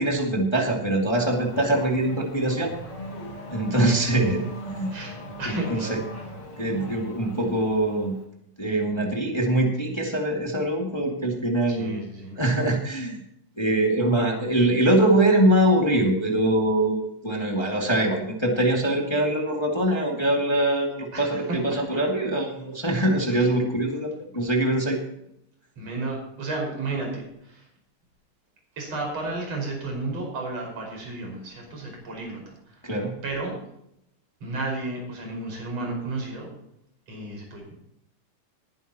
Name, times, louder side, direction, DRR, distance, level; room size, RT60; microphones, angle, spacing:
voice 1, 0.0-2.7 3.5-4.9 5.4-5.9 6.6-8.2 8.6-12.0 12.4-13.2 13.6-25.0 32.8-33.1, right 1 dB, 10° left, 0 dB, 1.6 m, -23 dB
Race car auto racing / Accelerating revving vroom, 1.0-8.2, equal, 30° left, 4.0 m, -39 dB
voice 2, 3.8-4.2 4.9-6.0 11.7-12.4 21.1-21.4 21.7-22.0 23.3-23.5 25.8-27.7 28.8-32.8 33.2-33.5 34.4-36.5 37.1-37.7, right 2 dB, 50° right, 0 dB, 6.5 m, -33 dB
20.0 x 11.0 x 3.0 m, 0.78 s
omnidirectional pair, 3.8 m